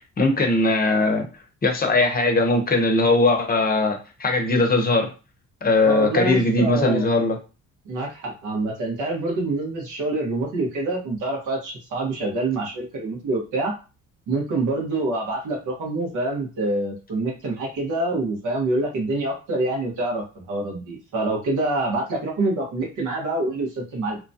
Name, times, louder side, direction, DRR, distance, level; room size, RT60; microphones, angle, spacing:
voice 1, 0.2-1.3 1.6-5.1 5.6-7.4, left 2 dB, 30° left, 4 dB, 0.7 m, -20 dB
voice 2, 5.8-7.3 7.8-13.7 14.3-24.2, right 2 dB, 80° right, -1 dB, 1.3 m, -26 dB
3.0 x 2.2 x 2.7 m, 0.32 s
cardioid pair, 90°, 30 cm